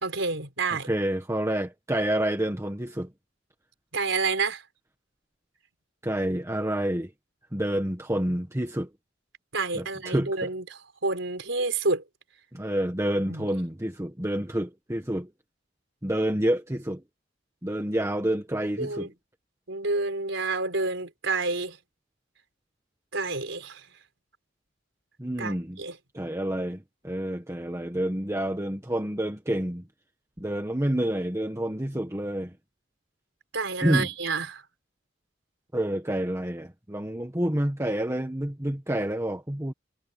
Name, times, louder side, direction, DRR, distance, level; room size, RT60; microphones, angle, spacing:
voice 1, 0.0-0.9 3.9-4.6 9.5-12.0 13.3-13.5 18.8-19.1 19.7-21.8 23.1-23.8 25.4-26.0 33.5-34.6, right 3 dB, 80° right, 4.2 m, -29 dB
voice 2, 0.9-3.1 6.0-7.1 7.5-8.9 9.7-10.5 12.5-15.3 16.0-17.0 17.6-19.1 25.2-25.8 26.1-29.8 30.4-32.5 33.8-34.1 35.7-39.7, right 1 dB, 15° right, 1.5 m, -28 dB
head